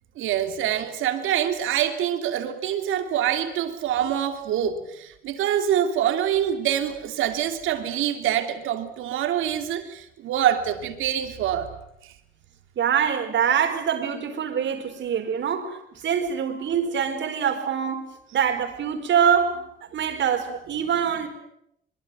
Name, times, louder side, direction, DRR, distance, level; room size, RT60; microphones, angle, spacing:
voice 1, 0.2-11.7 12.0-12.1, right 10 dB, 90° right, 3.0 m, -25 dB
voice 2, 12.8-19.6 19.9-21.3, right 8 dB, 65° right, 5.1 m, -24 dB
23.5 x 23.0 x 9.3 m
cardioid pair, 90°, 20 cm